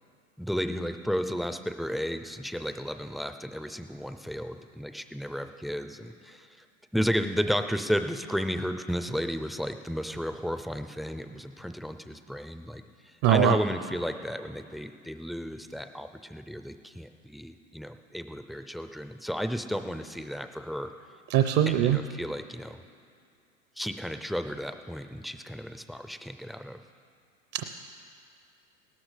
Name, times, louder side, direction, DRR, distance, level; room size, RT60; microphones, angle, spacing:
voice 1, 0.4-6.6 6.9-20.9 21.7-22.8 23.8-26.8, equal, ahead, 8 dB, 0.5 m, -33 dB
voice 2, 13.2-13.6 21.3-22.0 27.5-27.6, right 11 dB, 50° right, 7 dB, 0.8 m, -22 dB
17.5 x 13.0 x 5.0 m, 2.4 s
hypercardioid pair, 100°, 40 cm